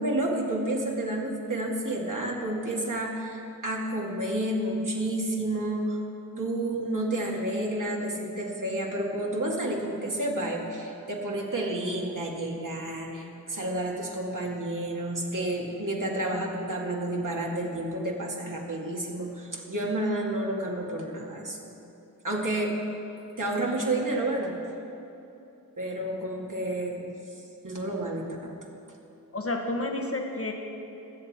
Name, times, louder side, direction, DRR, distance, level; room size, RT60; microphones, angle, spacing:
voice 1, 0.0-6.0 6.4-21.7 22.2-22.8 23.4-24.5 25.8-27.1 27.6-28.6, right 1 dB, 55° right, -2 dB, 2.2 m, -30 dB
voice 2, 29.3-30.5, left 2 dB, 40° left, 2 dB, 1.3 m, -30 dB
21.5 x 7.9 x 4.4 m, 2.9 s
wide cardioid pair, 45°, 37 cm